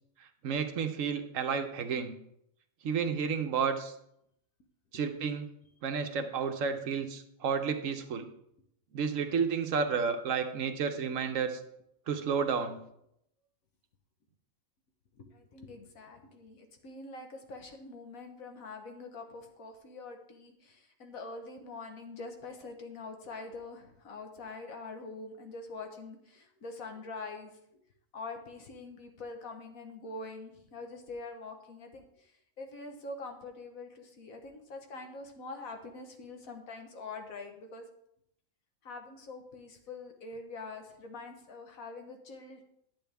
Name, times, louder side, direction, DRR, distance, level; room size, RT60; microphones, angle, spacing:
voice 1, 0.4-2.2 2.8-3.9 4.9-5.5 5.8-8.2 8.9-11.6 12.1-12.8, right 6 dB, 70° right, 7 dB, 1.2 m, -31 dB
voice 2, 15.1-27.6 28.1-37.8 38.8-42.6, left 3 dB, 80° left, 5 dB, 1.6 m, -44 dB
10.5 x 7.9 x 3.4 m, 0.75 s
omnidirectional pair, 1.4 m